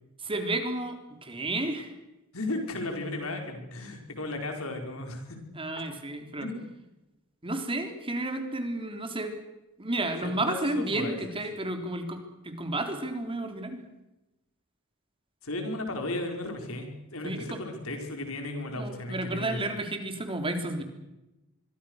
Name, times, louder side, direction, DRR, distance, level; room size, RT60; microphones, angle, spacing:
voice 1, 0.2-1.9 5.6-6.5 7.4-9.3 9.8-13.8 17.2-17.6 18.8-20.8, right 2 dB, 25° right, 6 dB, 3.7 m, -32 dB
voice 2, 2.3-5.4 6.4-6.7 10.2-11.1 15.4-19.7, left 2 dB, 85° left, 4 dB, 5.3 m, -35 dB
25.0 x 23.5 x 6.5 m, 0.97 s
head